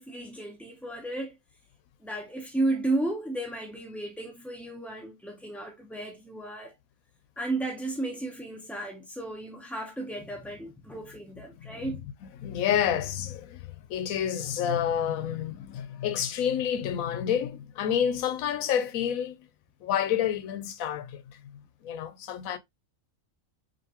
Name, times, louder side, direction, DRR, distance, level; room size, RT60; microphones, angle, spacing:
voice 1, 0.0-1.3 2.0-6.7 7.4-12.0, right 2 dB, ahead, 0.4 m, -33 dB
voice 2, 12.4-19.5 19.8-22.6, left 9 dB, 90° left, 1.1 m, -29 dB
5.1 x 2.6 x 2.8 m
omnidirectional pair, 1.4 m